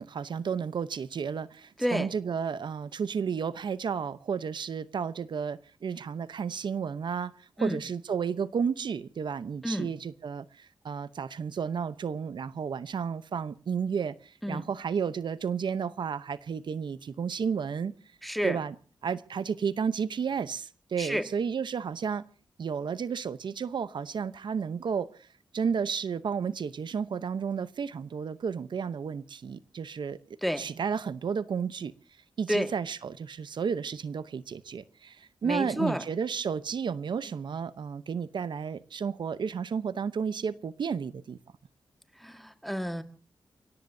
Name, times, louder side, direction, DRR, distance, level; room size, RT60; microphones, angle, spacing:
voice 1, 0.0-17.9 18.4-18.7 19.0-22.2 22.6-25.3 25.5-30.2 30.6-31.9 32.4-41.4, right 6 dB, 70° right, 14 dB, 0.8 m, -32 dB
voice 2, 18.2-18.6 21.0-21.2 30.4-30.7 32.5-32.7 35.4-36.0 42.2-43.0, equal, ahead, 8 dB, 1.7 m, -30 dB
29.5 x 17.5 x 2.7 m, 0.38 s
wide cardioid pair, 95°, 8 cm